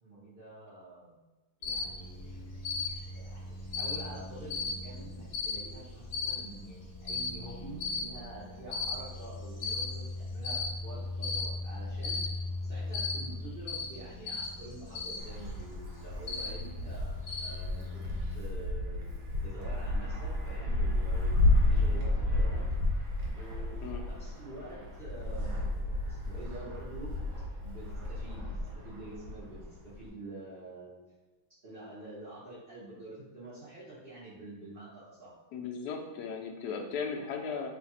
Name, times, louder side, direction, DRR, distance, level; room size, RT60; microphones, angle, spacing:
voice 1, 0.0-1.2 1.6-2.3 3.1-12.3 12.6-18.0 18.3-21.4 21.7-22.6 23.3-27.1 27.6-31.0 31.6-35.3, right 2 dB, 50° right, -9 dB, 0.6 m, -47 dB
Cricket, 1.6-18.4, left 3 dB, 30° left, 1.4 m, -37 dB
Wind, 15.2-30.1, left 2 dB, 70° right, 1.4 m, -32 dB
voice 2, 35.5-37.7, left 5 dB, 75° left, 2 dB, 0.9 m, -36 dB
3.2 x 2.4 x 4.0 m, 1.2 s
omnidirectional pair, 2.1 m